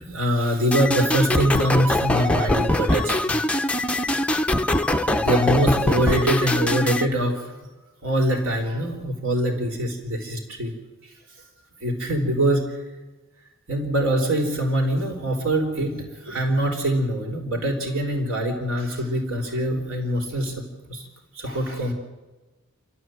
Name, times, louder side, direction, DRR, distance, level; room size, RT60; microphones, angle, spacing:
voice 1, 0.0-3.4 5.1-7.4 8.0-10.7 11.8-12.7 13.7-20.6 20.9-21.0 21.4-21.9, right 1 dB, 65° right, 1 dB, 3.8 m, -23 dB
sound 1, 0.7-7.1, left 1 dB, 5° left, 0.6 m, -22 dB
29.5 x 12.5 x 7.8 m, 1.2 s
head